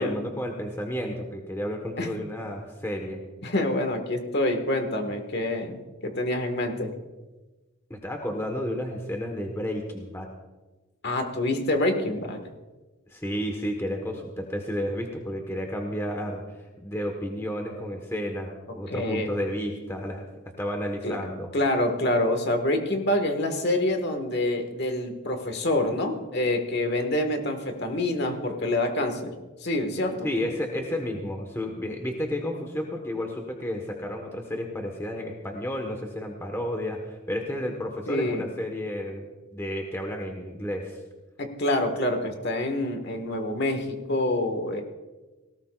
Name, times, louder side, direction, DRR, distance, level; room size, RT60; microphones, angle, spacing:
voice 1, 0.0-3.2 7.9-10.3 13.1-16.4 16.8-20.3 20.6-21.5 30.2-39.2 39.5-41.0, equal, 15° left, 2 dB, 1.3 m, -31 dB
voice 2, 3.4-6.9 11.0-12.4 18.9-19.3 21.0-21.2 21.5-30.3 38.1-38.4 41.4-44.8, left 1 dB, 55° left, 6 dB, 1.7 m, -26 dB
18.5 x 18.0 x 2.4 m, 1.2 s
head